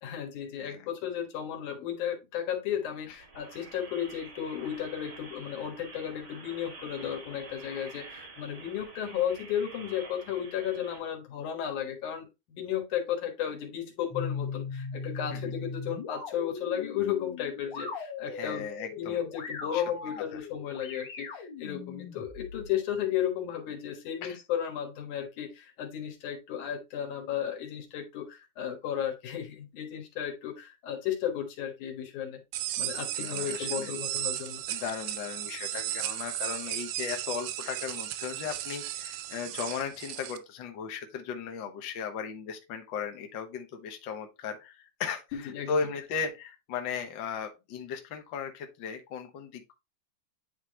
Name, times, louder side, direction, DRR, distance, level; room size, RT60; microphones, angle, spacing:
voice 1, 0.0-18.7 19.0-32.4 32.8-34.6 45.5-45.7, left 9 dB, 70° left, 2.8 m, -34 dB
sound 1, 3.0-11.0, right 3 dB, 50° right, 0.8 m, -48 dB
sound 2, 14.1-22.7, left 4 dB, 45° left, 1.8 m, -39 dB
voice 2, 18.3-19.2 19.7-19.8 20.1-20.4 24.2-24.4 33.2-33.9 34.7-45.2 45.7-49.7, left 6 dB, 85° left, 1.0 m, -36 dB
sound 3, 32.5-40.4, right 13 dB, 85° right, 2.3 m, -35 dB
9.5 x 3.7 x 3.0 m
omnidirectional pair, 3.8 m